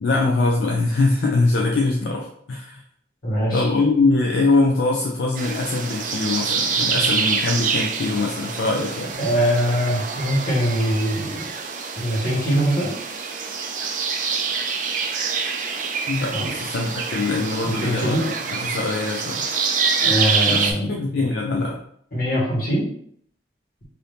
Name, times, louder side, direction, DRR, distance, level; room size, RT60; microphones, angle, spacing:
voice 1, 0.0-2.8 3.5-9.2 16.1-19.4 20.5-21.8, left 3 dB, 75° left, 0 dB, 0.4 m, -22 dB
voice 2, 3.2-3.6 9.2-11.5 12.0-13.0 16.3-16.5 17.6-18.2 20.0-21.2 22.1-22.8, equal, 55° left, -6 dB, 1.3 m, -22 dB
sound 1, 5.4-20.7, right 5 dB, 45° right, 0.3 m, -26 dB
2.7 x 2.7 x 3.3 m, 0.65 s
head